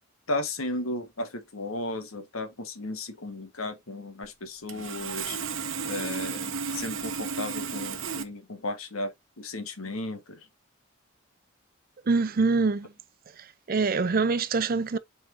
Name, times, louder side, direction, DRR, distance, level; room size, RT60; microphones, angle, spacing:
voice 1, 0.3-5.4 5.8-10.5, left 2 dB, 85° left, 1.5 m, -35 dB
Sawing, 4.7-8.2, right 5 dB, 65° right, 1.1 m, -33 dB
voice 2, 12.1-12.9 13.7-15.0, right 4 dB, 45° right, 0.5 m, -24 dB
7.9 x 4.5 x 2.7 m
head